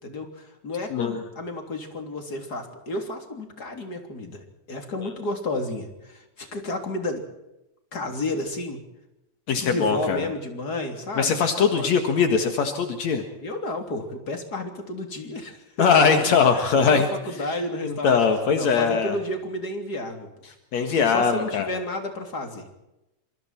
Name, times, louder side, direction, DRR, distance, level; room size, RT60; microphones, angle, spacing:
voice 1, 0.0-7.2 7.9-8.8 9.6-11.9 13.4-18.2 18.5-20.3 20.8-22.7, left 2 dB, 30° left, 4 dB, 3.7 m, -32 dB
voice 2, 0.9-1.2 5.0-5.1 9.5-10.2 11.2-13.2 15.8-17.1 17.5-17.6 17.8-19.2 20.7-21.7, left 6 dB, 70° left, 6 dB, 2.9 m, -21 dB
27.0 x 25.0 x 4.5 m, 0.92 s
omnidirectional pair, 3.3 m